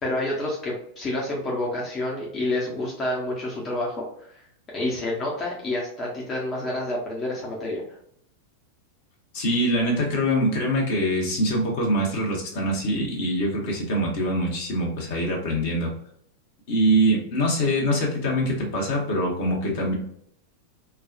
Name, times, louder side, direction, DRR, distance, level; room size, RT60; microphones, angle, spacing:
voice 1, 0.0-4.4 4.7-7.8, left 1 dB, 25° left, -4 dB, 0.9 m, -28 dB
voice 2, 9.3-15.9 16.7-19.9, equal, 50° left, -1 dB, 1.2 m, -24 dB
4.6 x 2.3 x 2.4 m, 0.67 s
figure-of-eight pair, 90°, 0 cm